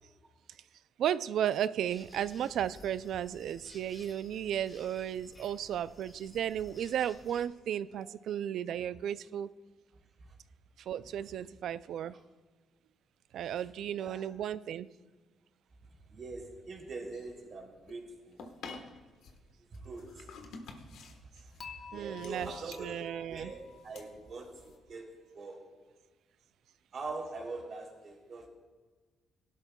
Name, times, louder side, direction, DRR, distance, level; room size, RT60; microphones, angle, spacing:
voice 1, 1.0-9.5 10.8-12.2 13.3-14.9 21.9-23.5, right 10 dB, 75° right, 16 dB, 0.3 m, -34 dB
sound 1, 1.8-7.5, left 1 dB, 20° left, 2.2 m, -55 dB
voice 2, 16.1-18.4 19.7-22.9 23.3-25.1 25.3-25.6 26.9-28.5, right 3 dB, 50° right, 0 dB, 3.0 m, -44 dB
sound 2, 17.1-24.8, left 4 dB, 80° left, 1.2 m, -51 dB
Dishes pots and pans / Chink clink, 21.6-24.8, left 5 dB, 40° left, 1.1 m, -51 dB
17.5 x 12.0 x 2.3 m, 1.4 s
cardioid pair, 90°, 0 cm